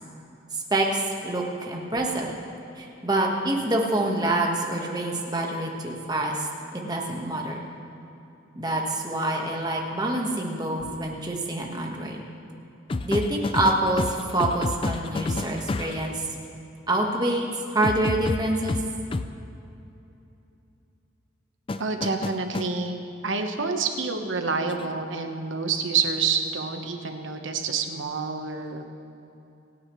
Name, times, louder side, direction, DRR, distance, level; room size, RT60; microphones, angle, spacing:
voice 1, 0.7-2.3 2.8-6.5 6.7-7.6 8.5-12.2 13.0-16.3 16.9-18.8, right 1 dB, 20° right, 0 dB, 1.4 m, -26 dB
sound 1, 12.9-16.1 17.8-19.3 21.7-22.7 24.7-24.9, left 2 dB, 25° left, 0.3 m, -29 dB
voice 2, 21.8-23.0 23.2-28.8, right 5 dB, 75° right, 5 dB, 1.1 m, -28 dB
27.0 x 9.6 x 3.2 m, 2.8 s
head